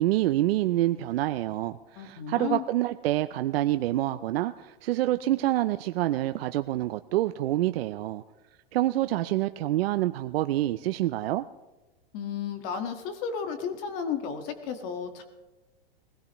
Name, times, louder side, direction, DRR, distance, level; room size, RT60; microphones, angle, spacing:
voice 1, 0.0-8.2 8.7-11.4, right 15 dB, 75° right, 10 dB, 0.5 m, -27 dB
voice 2, 2.0-2.6 12.1-15.2, left 7 dB, 40° left, 7 dB, 1.6 m, -33 dB
21.0 x 17.0 x 3.1 m, 1.1 s
supercardioid pair, 155°, 30 cm